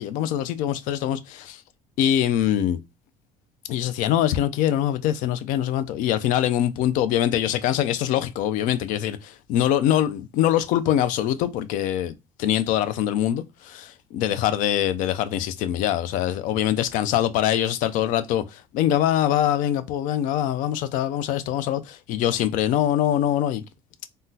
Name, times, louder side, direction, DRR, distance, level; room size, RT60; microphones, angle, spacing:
voice 1, 0.0-1.6 2.0-2.8 3.7-23.6, left 11 dB, 70° left, 0.4 m, -23 dB
3.6 x 2.1 x 2.7 m
supercardioid pair, 85°, 14 cm